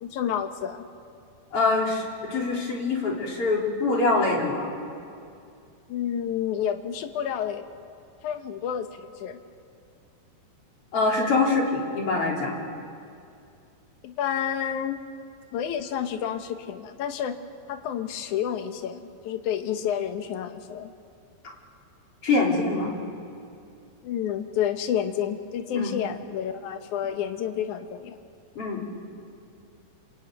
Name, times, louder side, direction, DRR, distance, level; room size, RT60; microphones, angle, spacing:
voice 1, 0.0-0.9 5.9-7.7 8.2-9.4 14.0-15.0 15.5-17.4 17.7-20.9 24.0-28.2, left 9 dB, 75° left, 7 dB, 1.8 m, -30 dB
voice 2, 1.5-4.7 10.9-12.6 22.2-22.9 25.7-25.9 28.6-28.8, left 3 dB, 35° left, -1 dB, 4.1 m, -24 dB
27.5 x 23.0 x 9.3 m, 2.5 s
omnidirectional pair, 5.1 m